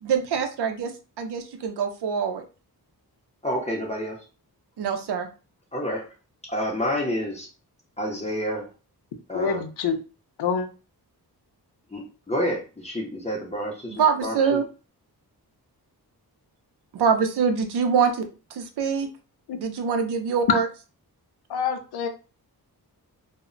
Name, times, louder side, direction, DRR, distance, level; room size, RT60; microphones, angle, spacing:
voice 1, 0.0-2.4 4.8-5.3 13.9-14.6 16.9-19.1 19.6-20.7, right 6 dB, 90° right, 6 dB, 0.5 m, -24 dB
voice 2, 3.4-4.2 5.7-6.1 6.5-7.5 8.0-8.7 9.3-9.6 11.9-12.0 12.3-14.6, equal, 15° left, -2 dB, 0.5 m, -29 dB
voice 3, 9.3-10.0 10.4-10.7 19.5-19.6 21.5-22.1, left 6 dB, 85° left, 7 dB, 0.5 m, -26 dB
2.1 x 2.0 x 3.7 m, 0.33 s
wide cardioid pair, 140°, 38 cm